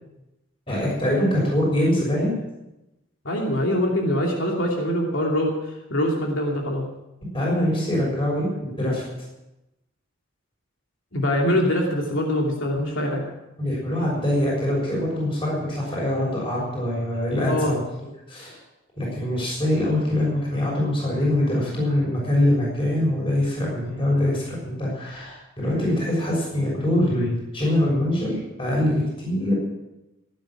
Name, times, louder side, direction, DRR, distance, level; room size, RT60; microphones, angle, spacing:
voice 1, 0.7-2.4 7.3-9.0 13.6-17.8 18.3-18.6 19.0-29.5, left 1 dB, 30° left, -3 dB, 6.4 m, -23 dB
voice 2, 3.2-5.5 5.9-6.9 11.1-13.2 17.5-17.8, left 1 dB, 80° left, 0 dB, 2.7 m, -23 dB
17.5 x 9.9 x 7.6 m, 0.95 s
head